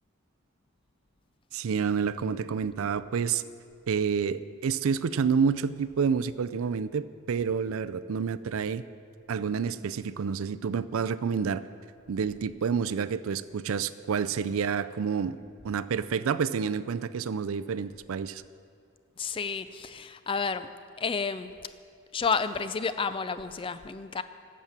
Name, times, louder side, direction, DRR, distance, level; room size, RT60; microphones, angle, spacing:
voice 1, 1.5-3.4 3.9-8.8 9.3-11.6 12.1-15.4 15.6-18.4, right 6 dB, 75° right, 15 dB, 0.4 m, -29 dB
voice 2, 19.2-20.7 21.0-21.5 22.1-24.2, left 5 dB, 25° left, 12 dB, 0.3 m, -30 dB
12.0 x 7.5 x 7.2 m, 2.3 s
head